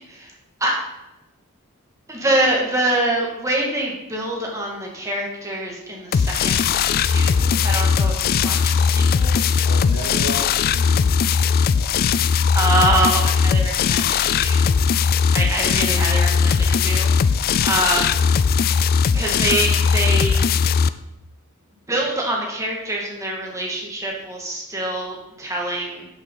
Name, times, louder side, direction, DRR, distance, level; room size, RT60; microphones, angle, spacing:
voice 1, 2.1-9.5 12.5-14.7 15.3-17.1 17.6-18.2 19.1-20.5 21.9-26.1, right 1 dB, 15° right, -2 dB, 1.8 m, -25 dB
sound 1, 6.1-20.9, left 6 dB, 40° left, 0.3 m, -19 dB
voice 2, 9.6-11.9, left 1 dB, 70° right, 0 dB, 1.7 m, -34 dB
10.5 x 6.8 x 3.9 m, 0.93 s
head